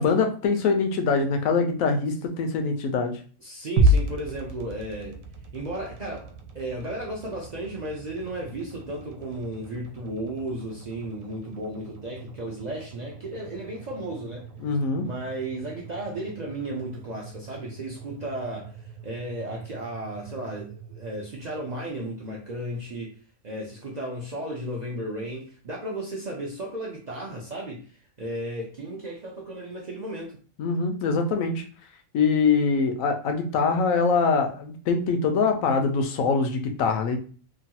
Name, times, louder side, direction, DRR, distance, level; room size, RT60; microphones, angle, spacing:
voice 1, 0.0-3.2 14.6-15.1 30.6-31.6 32.1-37.2, left 4 dB, 85° left, 5 dB, 1.0 m, -23 dB
voice 2, 3.4-5.2 5.5-14.5 15.0-23.1 23.4-30.3, right 1 dB, 55° right, -2 dB, 0.5 m, -34 dB
sound 1, 3.8-22.0, right 1 dB, 80° right, 1.0 m, -33 dB
3.0 x 2.3 x 2.8 m, 0.40 s
omnidirectional pair, 1.4 m